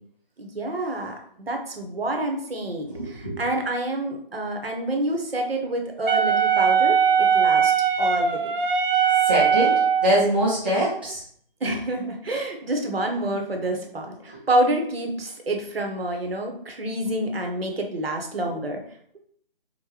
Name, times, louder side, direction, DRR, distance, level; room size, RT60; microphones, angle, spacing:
voice 1, 0.4-7.7 8.0-8.5 11.6-18.8, right 1 dB, 80° right, 3 dB, 1.1 m, -28 dB
voice 2, 2.9-3.4 9.2-11.2 11.6-11.7, equal, 10° right, -9 dB, 0.6 m, -24 dB
Wind instrument woodwind instrument, 6.1-10.2, right 7 dB, 60° right, 0.5 m, -20 dB
5.3 x 2.2 x 3.2 m, 0.63 s
figure-of-eight pair, 165°, 29 cm